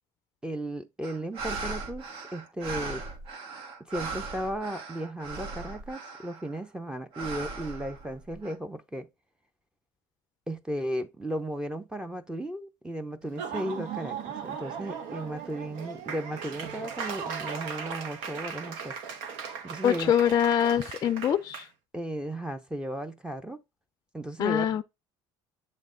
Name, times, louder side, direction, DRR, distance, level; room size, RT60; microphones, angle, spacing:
voice 1, 0.4-3.0 3.8-9.1 10.5-18.9 19.6-20.1 21.9-23.6 24.1-24.7, right 1 dB, 10° right, 0.7 m, -35 dB
sound 1, 1.0-6.6 7.1-8.5, right 3 dB, 60° right, 1.3 m, -38 dB
Laughter / Applause, 13.2-21.7, right 6 dB, 75° right, 1.0 m, -37 dB
voice 2, 19.8-21.7 24.4-24.8, left 9 dB, 35° left, 0.4 m, -24 dB
7.5 x 3.3 x 3.8 m
supercardioid pair, 115°, 11 cm